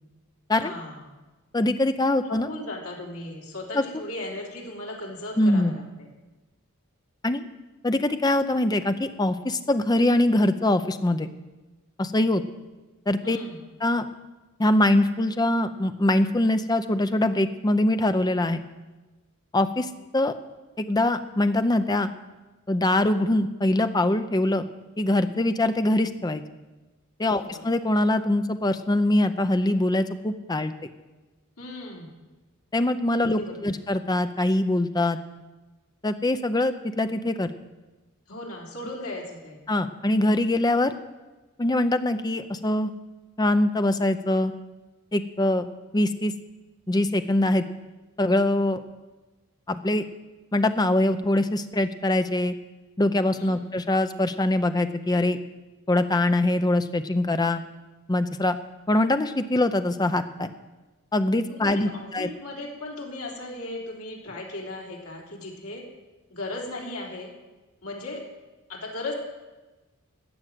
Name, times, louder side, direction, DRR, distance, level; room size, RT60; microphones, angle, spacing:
voice 1, 0.5-1.2 2.2-6.1 13.2-13.6 27.2-27.6 31.6-32.1 33.4-33.8 38.3-39.6 53.3-53.6 61.5-65.8 66.3-67.3 67.8-68.2 68.7-69.1, left 2 dB, 80° left, -2 dB, 3.3 m, -37 dB
voice 2, 1.5-2.5 3.7-3.8 5.4-5.7 7.2-7.4 7.8-11.3 12.0-12.4 13.1-13.4 13.8-14.1 14.6-18.6 19.5-19.9 20.1-20.3 20.8-22.1 22.7-24.6 25.0-26.4 27.2-30.7 32.7-35.2 36.0-37.5 39.7-40.9 41.6-42.9 43.4-44.5 45.1-45.7 45.9-46.3 46.9-47.6 48.2-48.8 49.7-50.1 50.5-52.5 53.0-55.4 55.9-57.6 58.1-58.6 58.9-60.5 61.1-62.3, left 1 dB, 20° left, 9 dB, 0.6 m, -23 dB
14.0 x 6.3 x 9.1 m, 1.2 s
head